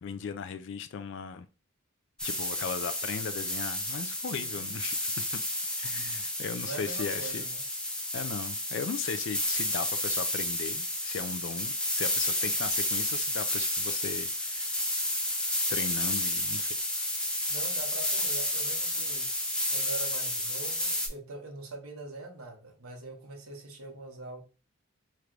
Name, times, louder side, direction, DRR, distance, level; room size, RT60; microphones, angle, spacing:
voice 1, 0.0-1.5 2.2-5.4 5.8-7.5 8.1-14.8 15.7-16.7, left 6 dB, 55° left, 0.3 m, -37 dB
sound 1, 2.2-21.1, left 1 dB, 5° left, 0.5 m, -31 dB
voice 2, 4.3-4.7 6.6-7.6 17.5-19.3 19.7-24.4, right 3 dB, 80° right, 1.1 m, -43 dB
3.2 x 2.5 x 4.5 m
head